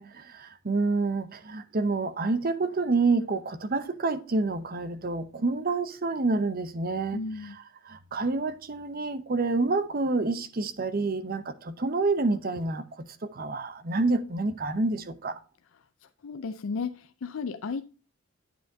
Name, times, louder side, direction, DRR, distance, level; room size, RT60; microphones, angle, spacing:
voice 1, 0.0-15.4, right 3 dB, 45° right, 0.7 m, -28 dB
voice 2, 7.1-7.6 16.2-17.8, left 4 dB, 70° left, 0.5 m, -34 dB
9.2 x 7.7 x 2.7 m
head